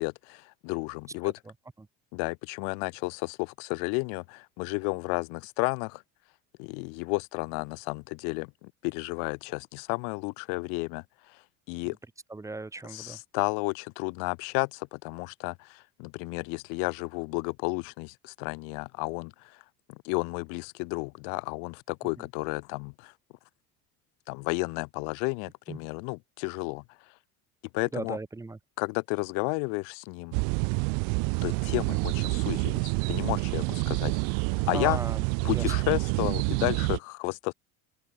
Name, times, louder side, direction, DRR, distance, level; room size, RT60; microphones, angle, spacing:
voice 1, 0.0-1.3 2.1-6.0 6.6-11.4 11.7-12.0 12.9-19.6 19.9-23.1 24.3-26.8 27.7-28.2 28.8-30.4 31.4-34.4 34.7-35.0 35.4-37.5, left 40 dB or more, 75° left, 3.6 m, -32 dB
voice 2, 12.3-13.2 22.2-22.3 25.7-25.8 27.9-28.6 34.7-35.2 35.5-35.6, right 3 dB, 10° right, 2.9 m, -37 dB
sound 1, 30.3-37.0, right 40 dB or more, 70° right, 0.6 m, -28 dB
open air
cardioid pair, 160°, 32 cm